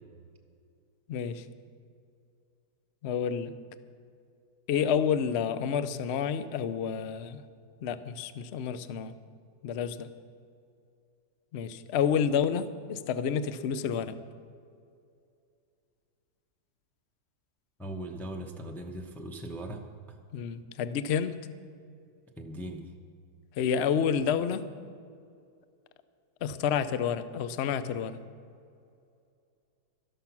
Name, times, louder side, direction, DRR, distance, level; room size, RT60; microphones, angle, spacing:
voice 1, 1.1-1.4 3.0-3.5 4.7-7.4 7.8-9.1 9.6-10.1 11.5-14.2 20.3-21.4 23.6-24.6 26.4-28.2, left 7 dB, 90° left, 13 dB, 0.5 m, -29 dB
voice 2, 17.8-19.8 22.4-22.8, right 1 dB, 5° left, 2 dB, 0.3 m, -39 dB
13.0 x 12.0 x 5.9 m, 2.4 s
omnidirectional pair, 1.9 m